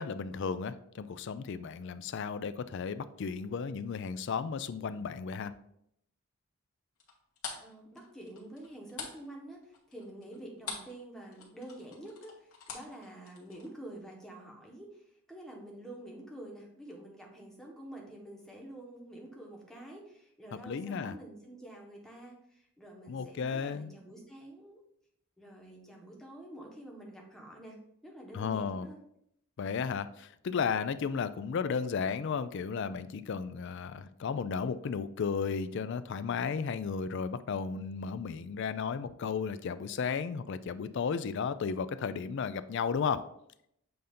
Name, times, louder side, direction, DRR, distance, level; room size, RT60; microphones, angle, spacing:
voice 1, 0.0-5.5 20.6-21.1 23.1-23.9 28.3-28.9 29.6-43.3, left 6 dB, 55° left, 13 dB, 0.3 m, -34 dB
sound 1, 7.0-11.0 11.3-13.7, left 5 dB, 75° left, 1.5 m, -44 dB
voice 2, 7.6-15.0 15.3-24.8 25.4-27.7 28.0-29.0, right 1 dB, ahead, -1 dB, 1.1 m, -48 dB
7.7 x 2.7 x 5.1 m, 0.75 s
head